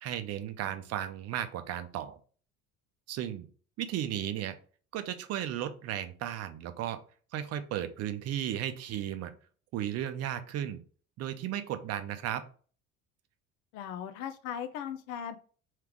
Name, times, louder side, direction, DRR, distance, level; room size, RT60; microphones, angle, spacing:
voice 1, 0.0-2.2 3.1-3.5 3.8-4.5 4.9-7.0 7.3-9.3 9.7-10.8 11.2-12.5, right 11 dB, 40° right, 10 dB, 0.7 m, -35 dB
voice 2, 13.7-15.4, left 9 dB, 50° left, 9 dB, 0.6 m, -38 dB
3.4 x 3.2 x 4.6 m, 0.41 s
figure-of-eight pair, 60°, 39 cm